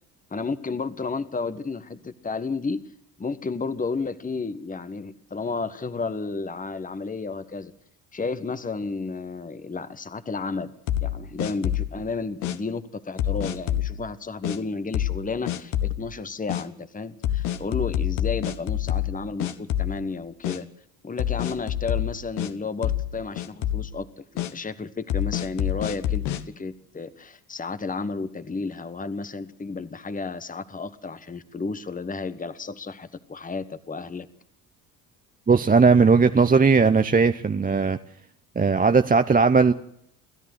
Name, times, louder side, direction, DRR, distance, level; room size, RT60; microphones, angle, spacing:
voice 1, 0.3-2.8 3.2-7.7 8.1-10.7 11.0-20.7 21.0-34.3, left 4 dB, 15° left, 13 dB, 1.4 m, -32 dB
sound 1, 10.9-12.0 12.4-12.6 13.2-13.9 14.4-14.6 14.9-15.2 15.5-16.0 16.5-16.6 17.2-19.1 19.4-20.1 20.4-20.6 21.2-22.5 22.8-23.1 23.4-23.9 24.4-24.5 25.1-26.4, left 11 dB, 60° left, 1.5 m, -26 dB
voice 2, 35.5-38.0 38.6-39.7, right 5 dB, 20° right, 9 dB, 0.9 m, -18 dB
28.5 x 14.0 x 8.0 m, 0.72 s
hypercardioid pair, 55°, 46 cm